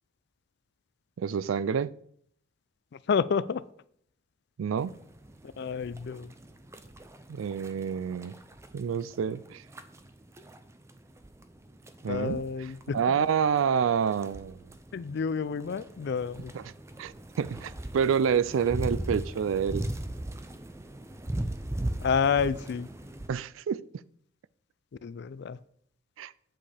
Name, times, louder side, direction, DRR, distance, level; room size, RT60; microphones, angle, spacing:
voice 1, 1.2-2.0 4.6-4.9 7.3-8.3 8.7-9.6 12.0-12.4 12.9-14.6 17.0-19.8 23.3-23.8 26.2-26.3, right 7 dB, 85° right, 0.4 m, -28 dB
voice 2, 2.9-3.6 5.6-6.3 12.1-13.2 14.9-16.5 22.0-22.9 25.0-25.6, left 6 dB, 55° left, 0.4 m, -29 dB
sound 1, 4.8-23.3, right 1 dB, 15° right, 0.5 m, -39 dB
8.6 x 7.5 x 3.4 m
head